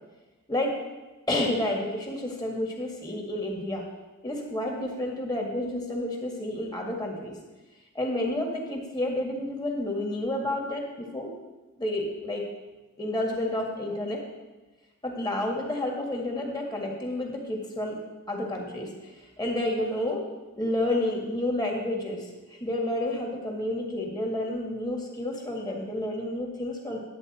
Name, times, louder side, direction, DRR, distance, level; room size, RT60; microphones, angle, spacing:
voice 1, 1.3-3.8 4.2-7.3 7.9-11.3 11.8-12.4 13.0-14.2 15.0-18.0 18.3-20.2 20.6-27.0, left 1 dB, 20° left, 0 dB, 1.7 m, -30 dB
10.5 x 8.5 x 4.2 m, 1.2 s
head